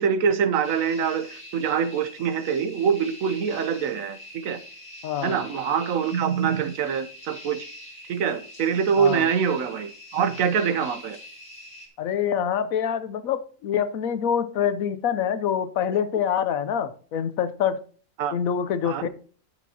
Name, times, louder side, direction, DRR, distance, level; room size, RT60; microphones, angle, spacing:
voice 1, 0.0-4.2 4.4-4.6 5.2-7.7 8.1-11.2 18.2-18.3 18.8-19.0, right 7 dB, 75° right, 1.2 m, -24 dB
sound 1, 0.6-11.9, left 1 dB, 65° left, 3.2 m, -44 dB
voice 2, 5.0-5.4 9.0-9.3 12.0-17.8 18.3-19.1, left 8 dB, 85° left, 1.2 m, -26 dB
13.0 x 8.1 x 2.8 m
omnidirectional pair, 1.4 m